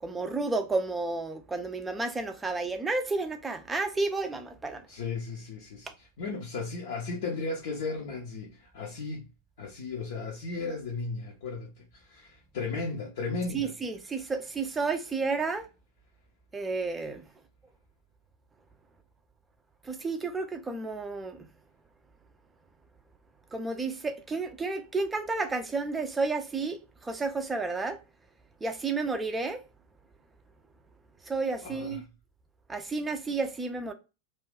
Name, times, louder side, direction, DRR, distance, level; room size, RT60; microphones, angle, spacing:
voice 1, 0.0-4.8 13.5-15.7 16.5-17.2 19.8-21.5 23.5-28.0 28.6-29.6 31.3-32.0 32.7-33.9, right 3 dB, 15° right, 0.5 m, -31 dB
voice 2, 4.9-9.3 9.6-13.7 14.1-14.2 31.6-32.0, left 4 dB, 55° left, 0.6 m, -35 dB
2.5 x 2.3 x 3.4 m
figure-of-eight pair, 90°, 0 cm